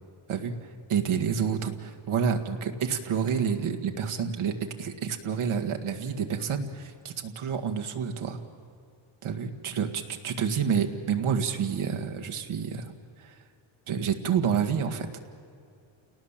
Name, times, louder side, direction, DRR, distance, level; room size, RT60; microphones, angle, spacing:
voice 1, 0.9-8.4 9.2-12.9 13.2-13.4 13.9-15.2, right 7 dB, 80° right, 5 dB, 2.0 m, -29 dB
29.0 x 18.5 x 7.4 m, 2.5 s
wide cardioid pair, 135°, 49 cm